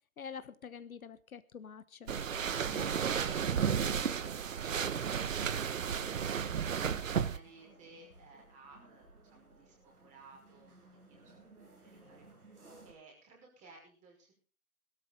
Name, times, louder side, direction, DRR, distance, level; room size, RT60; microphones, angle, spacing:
voice 1, 0.2-2.1 2.7-2.8, left 6 dB, 70° left, 1.2 m, -47 dB
sound 1, 2.1-7.4, right 7 dB, 60° right, 1.2 m, -33 dB
sound 2, 2.2-12.9, right 2 dB, 80° right, 7.4 m, -58 dB
voice 2, 2.5-10.7 11.1-11.4 11.8-12.3 12.8-14.4, right 3 dB, 15° right, 5.5 m, -56 dB
18.0 x 13.0 x 4.0 m
hypercardioid pair, 150°, 44 cm